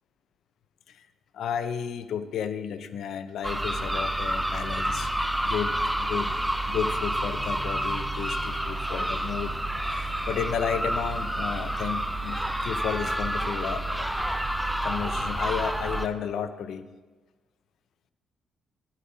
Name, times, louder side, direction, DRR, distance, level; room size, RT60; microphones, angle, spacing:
voice 1, 1.3-6.3 6.7-9.5 9.8-14.1 14.8-16.9, left 8 dB, 70° left, 12 dB, 0.6 m, -33 dB
sound 1, 3.4-16.1, right 1 dB, ahead, 0.5 m, -29 dB
13.0 x 11.0 x 2.7 m, 1.3 s
cardioid pair, 90°, 0 cm